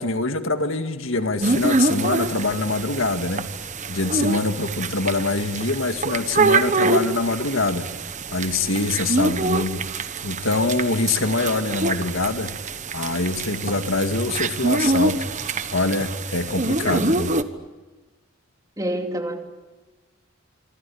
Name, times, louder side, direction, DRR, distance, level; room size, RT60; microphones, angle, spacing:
voice 1, 0.0-3.5 3.9-7.9 8.3-9.8 10.2-12.5 12.9-17.3, left 3 dB, 75° left, 8 dB, 2.0 m, -24 dB
sound 1, 1.4-17.4, right 3 dB, 35° right, 1.2 m, -25 dB
voice 2, 18.8-19.4, right 1 dB, 15° right, 5 dB, 2.6 m, -27 dB
26.0 x 25.0 x 8.6 m, 1.2 s
head